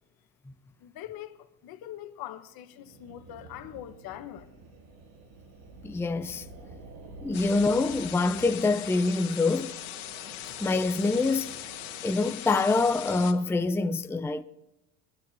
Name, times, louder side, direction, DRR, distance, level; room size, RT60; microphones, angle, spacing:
voice 1, 0.8-4.5, left 12 dB, 65° left, 1.3 m, -42 dB
sound 1, 2.7-12.0, right 3 dB, 75° right, 2.1 m, -49 dB
voice 2, 5.8-6.5 7.2-9.7 10.6-11.7 12.0-14.4, left 3 dB, 5° left, 0.5 m, -25 dB
sound 2, 7.3-13.3, left 13 dB, 85° left, 1.6 m, -40 dB
23.5 x 10.5 x 2.8 m
supercardioid pair, 85°, 39 cm